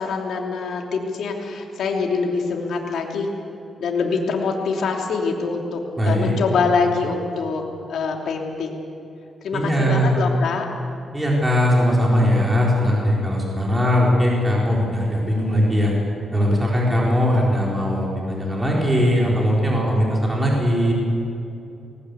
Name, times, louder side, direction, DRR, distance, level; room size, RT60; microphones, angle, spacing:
voice 1, 0.0-3.3 3.8-7.6 7.9-8.8 9.4-10.7, left 4 dB, 75° left, 1 dB, 3.1 m, -24 dB
voice 2, 6.0-6.3 9.5-10.2 11.1-15.9 16.3-20.9, equal, 15° right, -3 dB, 4.4 m, -20 dB
20.5 x 19.0 x 8.3 m, 2.7 s
cardioid pair, 115°, 0 cm